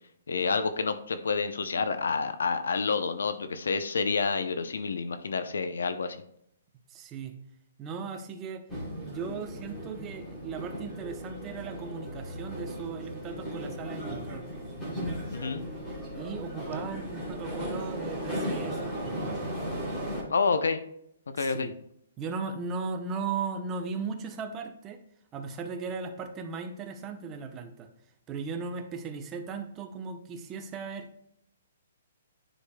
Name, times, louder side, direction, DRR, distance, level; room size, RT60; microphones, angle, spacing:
voice 1, 0.3-6.2 15.3-15.6 20.3-20.8 21.3-21.7, left 4 dB, 90° left, 10 dB, 0.6 m, -28 dB
voice 2, 6.9-7.3 7.8-8.6 9.0-14.5 16.2-19.5 21.4-21.7 22.2-25.0 25.3-27.9 28.3-31.1, right 5 dB, 20° right, 6 dB, 0.7 m, -37 dB
sound 1, 8.7-20.2, equal, 10° left, 2.7 m, -36 dB
9.9 x 5.0 x 2.2 m, 0.73 s
hypercardioid pair, 160°, 0 cm